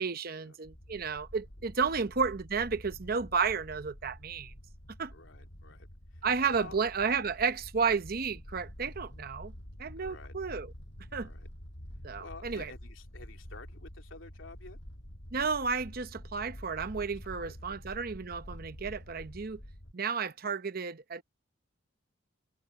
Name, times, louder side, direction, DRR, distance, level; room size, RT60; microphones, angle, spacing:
voice 1, 0.0-4.5 5.0-5.1 6.2-9.5 9.8-10.7 11.1-11.3 12.0-12.7 15.3-19.6 19.9-21.2, right 5 dB, 50° right, 0.8 m, -32 dB
sound 1, 0.6-19.9, equal, 65° left, 6.9 m, -48 dB
voice 2, 5.1-6.8 10.0-10.3 11.2-11.5 12.2-14.8 17.1-17.8, left 3 dB, 80° left, 3.3 m, -51 dB
head